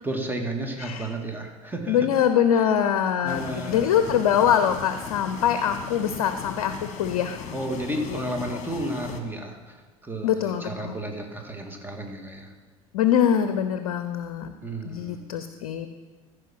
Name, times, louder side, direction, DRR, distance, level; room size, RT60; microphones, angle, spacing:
voice 1, 0.0-2.1 2.5-2.6 3.2-4.1 7.5-12.5 14.6-15.2, right 1 dB, 10° right, 3 dB, 1.8 m, -32 dB
voice 2, 1.9-7.4 8.1-8.2 10.2-11.0 12.9-14.5 14.8-15.9, left 9 dB, 65° left, 9 dB, 0.7 m, -23 dB
sound 1, 3.3-9.2, left 6 dB, 40° left, 1.4 m, -38 dB
15.0 x 5.0 x 6.0 m, 1.3 s
hypercardioid pair, 75°, 18 cm